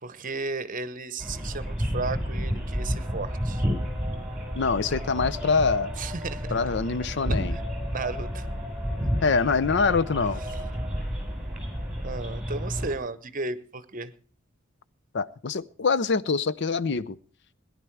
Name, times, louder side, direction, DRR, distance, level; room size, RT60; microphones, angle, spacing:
voice 1, 0.0-3.6 6.0-6.5 7.3-7.6 7.9-8.5 12.0-14.1, right 3 dB, 45° right, 15 dB, 0.9 m, -34 dB
sound 1, 1.2-13.0, equal, 5° right, 4.4 m, -31 dB
voice 2, 4.6-5.9 6.5-7.6 9.2-10.4 15.1-17.2, left 4 dB, 60° left, 17 dB, 0.6 m, -25 dB
18.0 x 11.0 x 4.6 m, 0.41 s
head